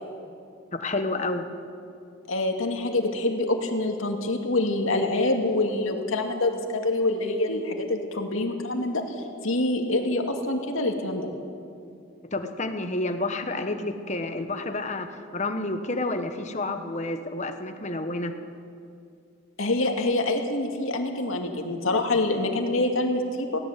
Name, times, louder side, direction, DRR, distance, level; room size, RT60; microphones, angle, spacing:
voice 1, 0.7-1.4 12.3-18.3, left 2 dB, 35° left, 7 dB, 1.2 m, -30 dB
voice 2, 2.3-9.0 9.4-11.3 19.6-23.6, left 2 dB, 80° left, 3 dB, 2.3 m, -26 dB
18.0 x 17.0 x 8.3 m, 2.5 s
head